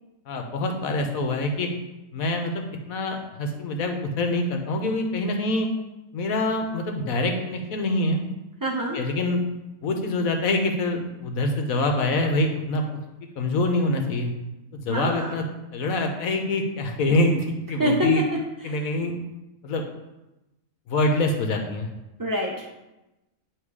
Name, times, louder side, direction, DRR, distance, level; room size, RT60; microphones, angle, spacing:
voice 1, 0.3-1.7 2.1-5.7 6.1-8.2 8.9-9.4 9.8-12.8 13.4-14.3 14.7-15.4 15.7-18.2 18.6-19.1 19.6-19.8 20.9-21.9, left 2 dB, 75° left, 4 dB, 1.3 m, -25 dB
voice 2, 8.6-9.0 14.9-15.3 17.8-18.2 22.2-22.7, right 1 dB, 30° right, -2 dB, 0.4 m, -25 dB
9.1 x 3.1 x 4.8 m, 0.98 s
omnidirectional pair, 1.5 m